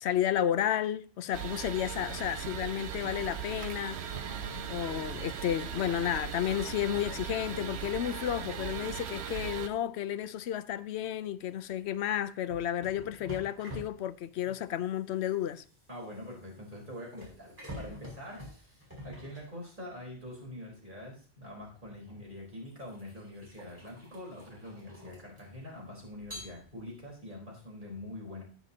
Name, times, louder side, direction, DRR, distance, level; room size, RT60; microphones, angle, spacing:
voice 1, 0.0-4.0 4.7-15.6, left 11 dB, 90° left, 0.9 m, -32 dB
sound 1, 1.3-9.7, right 8 dB, 90° right, 1.0 m, -38 dB
voice 2, 4.1-4.6 15.9-18.7 19.0-28.4, left 1 dB, 50° right, 4.3 m, -45 dB
sound 2, 12.5-20.1 21.4-21.6 22.3-25.7 26.2-27.1, equal, 15° right, 4.6 m, -48 dB
18.0 x 6.1 x 2.8 m
omnidirectional pair, 1.1 m